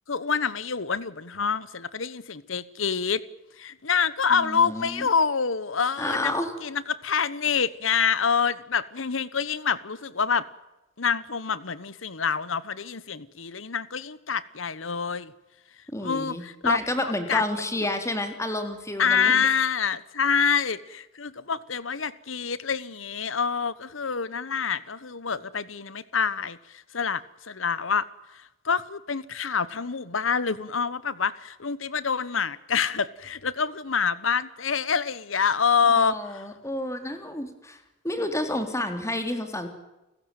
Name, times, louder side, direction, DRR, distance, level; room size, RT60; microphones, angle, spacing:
voice 1, 0.1-3.2 3.6-6.3 6.6-10.5 11.0-15.3 16.0-17.4 19.0-28.1 28.3-36.4, left 6 dB, 85° left, 1.2 m, -26 dB
voice 2, 4.3-5.1 6.0-6.5 15.9-19.5 36.0-39.7, left 1 dB, 15° left, 3.5 m, -30 dB
30.0 x 15.5 x 9.2 m
head